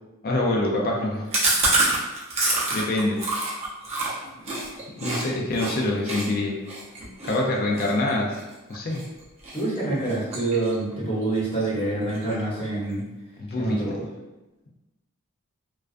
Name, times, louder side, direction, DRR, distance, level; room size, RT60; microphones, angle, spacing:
voice 1, 0.2-1.6 1.9-2.1 2.7-3.2 5.0-6.6 7.2-8.4 8.7-9.0 13.4-13.8, left 2 dB, 45° left, -1 dB, 0.4 m, -25 dB
Chewing mastication, 1.3-5.2 5.5-5.7 6.0-9.0 9.4-9.8 10.0-10.9 11.2-11.3 11.6-11.7 12.0-12.6, right 2 dB, 30° right, 0.6 m, -26 dB
voice 2, 9.5-13.0 13.6-14.0, right 2 dB, 25° left, -7 dB, 0.8 m, -26 dB
2.3 x 2.2 x 2.4 m, 1.0 s
head